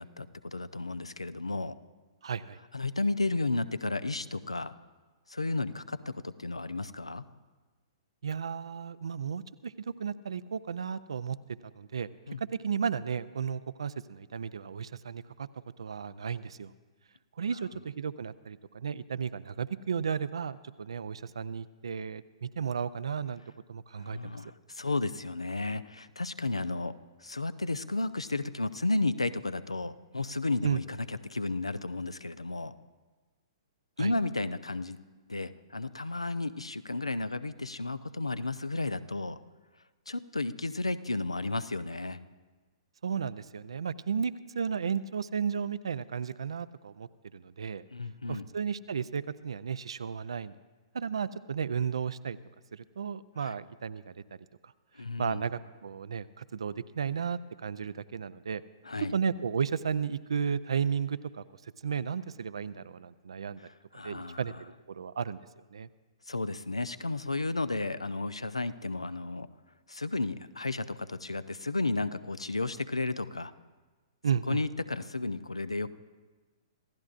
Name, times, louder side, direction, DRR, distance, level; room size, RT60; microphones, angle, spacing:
voice 1, 0.0-1.7 2.7-4.7 5.3-7.2 12.3-12.4 24.0-32.7 34.0-35.0 35.3-39.4 40.1-42.2 47.9-48.5 53.4-53.5 55.0-55.4 58.8-59.1 63.6-64.4 66.3-69.5 69.9-73.5 74.5-75.9, left 2 dB, 85° left, 14 dB, 0.6 m, -33 dB
voice 2, 2.2-2.6 8.2-11.4 11.7-12.1 12.4-15.5 15.8-16.7 17.4-23.4 23.7-24.4 30.6-30.8 34.0-34.1 43.0-47.8 48.3-50.5 50.9-52.4 52.7-54.2 54.6-54.7 55.2-58.6 59.0-63.6 63.9-65.9 74.2-74.6, right 6 dB, 70° right, 15 dB, 0.5 m, -34 dB
27.0 x 15.0 x 2.5 m, 1.3 s
figure-of-eight pair, 115°, 3 cm